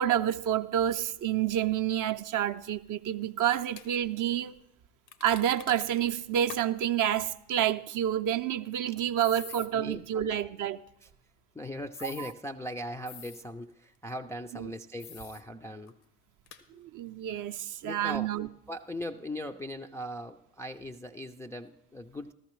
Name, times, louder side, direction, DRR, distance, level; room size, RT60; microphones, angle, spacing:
voice 1, 0.0-4.6 5.2-10.8 12.0-12.3 14.5-14.7 16.7-18.5, right 10 dB, 40° right, 0.6 m, -29 dB
sound 1, 3.4-3.9 5.1-6.1 6.5-6.6 6.9-7.0 9.2-9.7 11.9-12.3 13.1-13.4 15.0-15.4 15.9-16.0 16.5-16.6, left 8 dB, 80° left, 1.0 m, -46 dB
voice 2, 11.5-15.9 16.7-16.8 17.8-18.3 18.7-22.3, left 1 dB, 5° left, 0.4 m, -39 dB
14.0 x 13.5 x 3.1 m
hypercardioid pair, 55°, 49 cm